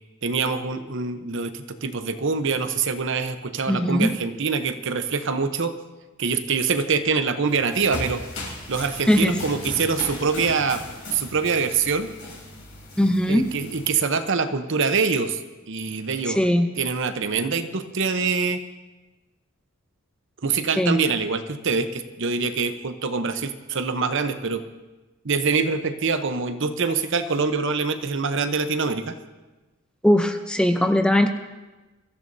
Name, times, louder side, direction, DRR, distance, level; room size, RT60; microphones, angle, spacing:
voice 1, 0.2-5.8 6.2-8.2 8.7-10.8 11.1-12.1 13.3-15.4 15.7-16.4 16.8-18.6 20.4-24.6 25.2-29.2, right 5 dB, 60° right, 9 dB, 0.8 m, -24 dB
voice 2, 3.7-4.1 9.1-9.4 13.0-13.5 16.3-16.7 20.8-21.0 30.0-31.3, left 1 dB, 5° left, 6 dB, 0.6 m, -19 dB
sound 1, 7.5-13.9, left 1 dB, 70° left, 5.9 m, -37 dB
23.5 x 14.0 x 2.7 m, 1.2 s
head